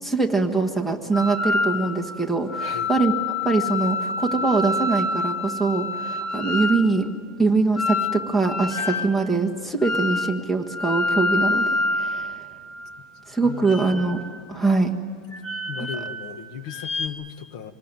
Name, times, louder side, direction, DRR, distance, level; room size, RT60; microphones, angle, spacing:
voice 1, 0.0-3.1 3.4-7.1 7.4-12.3 13.3-14.2 14.5-14.9, right 3 dB, 5° left, 5 dB, 1.5 m, -23 dB
sound 1, 1.1-2.1 2.5-6.9 7.8-9.2 9.8-10.4 10.7-13.0 13.6-14.4 15.3-16.3 16.7-17.1, left 3 dB, 30° left, 2.2 m, -27 dB
voice 2, 2.6-2.9 13.4-13.7 15.7-17.7, left 8 dB, 55° left, 10 dB, 1.5 m, -36 dB
26.5 x 20.5 x 9.1 m, 2.2 s
supercardioid pair, 165°, 4 cm